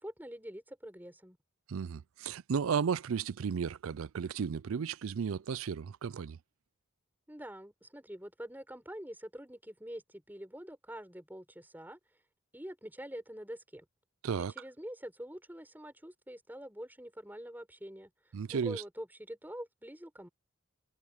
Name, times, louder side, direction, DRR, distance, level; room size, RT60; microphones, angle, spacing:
voice 1, 0.0-1.4 7.3-12.0 12.5-13.9 14.4-20.3, equal, 10° right, 5.8 m, -46 dB
voice 2, 1.7-6.4 14.2-14.5 18.3-18.8, right 6 dB, 70° right, 0.4 m, -34 dB
head